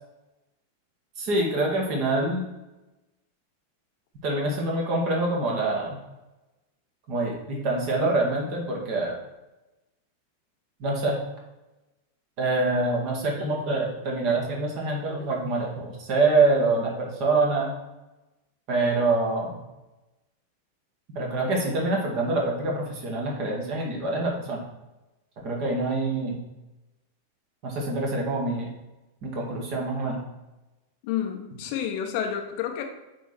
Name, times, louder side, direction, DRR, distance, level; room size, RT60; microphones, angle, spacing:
voice 1, 1.2-2.4 4.2-6.0 7.1-9.1 10.8-11.2 12.4-17.7 18.7-19.5 21.1-24.7 25.4-26.4 27.6-28.7 29.2-30.2, right 2 dB, 45° right, -1 dB, 2.0 m, -25 dB
voice 2, 31.0-32.8, left 9 dB, 45° left, 4 dB, 0.9 m, -29 dB
8.6 x 3.7 x 4.5 m, 1.0 s
figure-of-eight pair, 90°, 0 cm